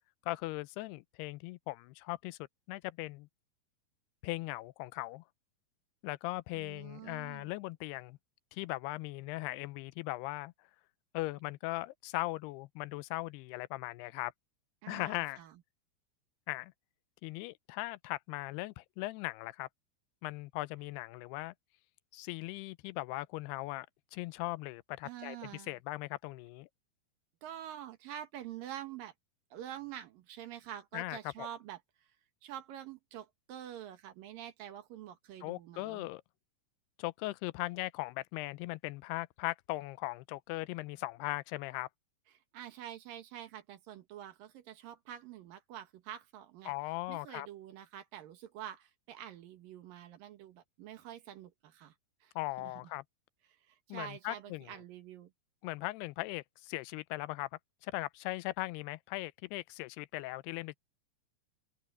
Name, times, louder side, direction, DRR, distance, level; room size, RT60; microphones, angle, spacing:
voice 1, 0.3-2.4 2.7-3.3 4.2-5.2 6.0-8.2 8.5-10.5 11.1-14.3 14.9-15.4 16.5-16.7 17.2-19.7 20.2-21.5 22.1-23.9 24.1-26.7 30.9-31.5 35.4-36.2 37.0-41.9 46.7-47.5 52.4-53.0 53.9-54.7 55.6-57.5 57.8-60.8, left 20 dB, 85° left, 2.6 m, -39 dB
voice 2, 6.5-7.5 14.8-15.6 25.0-25.8 27.4-29.1 29.5-31.8 32.4-36.1 42.3-46.7 47.1-51.9 52.2-52.3 52.6-52.7 53.6-55.3, right 11 dB, 65° right, 2.8 m, -47 dB
open air
omnidirectional pair, 4.6 m